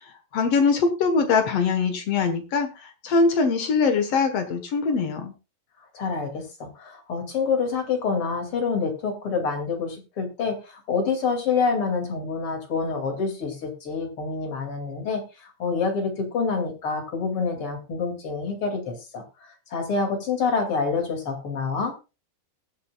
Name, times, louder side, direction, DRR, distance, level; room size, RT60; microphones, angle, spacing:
voice 1, 0.0-5.3, left 4 dB, 70° left, 7 dB, 1.4 m, -22 dB
voice 2, 5.9-21.9, left 5 dB, 40° left, 4 dB, 2.8 m, -27 dB
21.0 x 7.7 x 2.4 m, 0.29 s
omnidirectional pair, 4.9 m